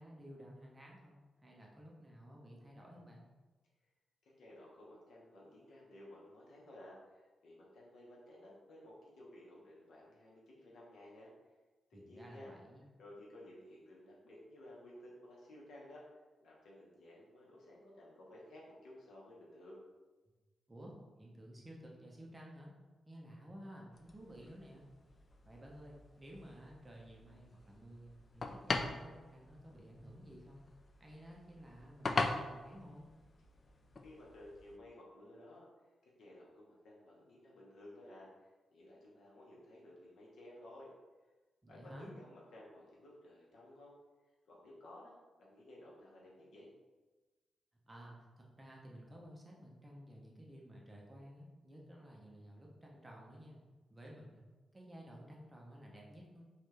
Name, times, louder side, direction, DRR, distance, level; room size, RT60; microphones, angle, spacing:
voice 1, 0.0-3.2 11.9-12.8 20.7-22.7 23.0-24.8 25.4-30.7 31.0-33.0 41.6-42.1 47.9-53.6 53.9-54.5 54.7-56.4, equal, 20° right, -2 dB, 0.8 m, -54 dB
voice 2, 4.2-11.3 11.9-12.5 13.0-19.8 34.0-35.7 36.0-40.9 41.7-43.9 44.5-46.7, left 1 dB, 85° left, -4 dB, 1.1 m, -56 dB
sound 1, 23.9-34.8, left 3 dB, 40° left, 0.3 m, -43 dB
3.7 x 3.2 x 3.3 m, 1.2 s
cardioid pair, 110°, 0 cm